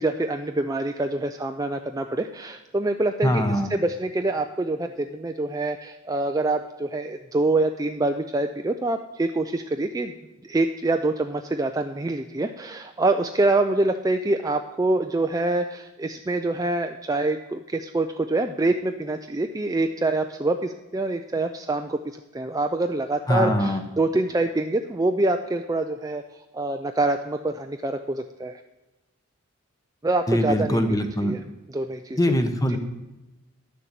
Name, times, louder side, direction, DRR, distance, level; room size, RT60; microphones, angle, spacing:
voice 1, 0.0-3.4 3.7-10.1 10.4-22.0 22.3-26.2 26.5-28.6 30.0-30.8 31.2-31.4 31.7-32.2 32.7-32.8, right 2 dB, 15° right, 6 dB, 0.3 m, -25 dB
voice 2, 3.2-3.7 23.3-23.8 30.3-31.4 32.2-32.8, equal, 15° left, 7 dB, 0.9 m, -22 dB
11.5 x 6.8 x 7.5 m, 1.0 s
head